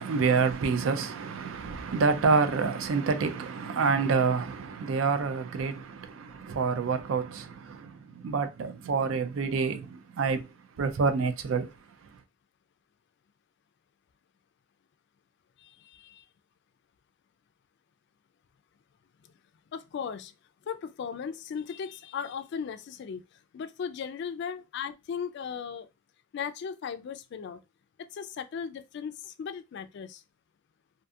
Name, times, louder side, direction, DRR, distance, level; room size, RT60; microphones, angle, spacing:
voice 1, 0.0-10.5 10.8-11.7, right 5 dB, 80° right, 0.4 m, -27 dB
voice 2, 15.6-16.3 19.2-19.3 19.7-20.3 20.6-25.9 26.3-27.6 28.1-30.2, left 7 dB, 60° left, 0.3 m, -37 dB
2.6 x 2.5 x 2.4 m
head